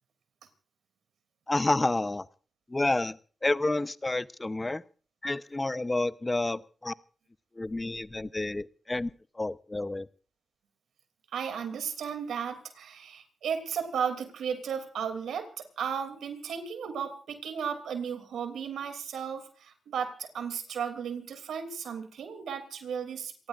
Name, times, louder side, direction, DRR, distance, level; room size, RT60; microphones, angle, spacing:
voice 1, 1.5-2.3 2.7-4.8 5.2-6.9 7.6-9.1 9.4-10.1, left 2 dB, 30° left, 15 dB, 0.8 m, -29 dB
voice 2, 11.3-23.5, right 7 dB, 85° right, 7 dB, 2.8 m, -35 dB
27.5 x 18.5 x 2.5 m, 0.40 s
supercardioid pair, 40°, 0 cm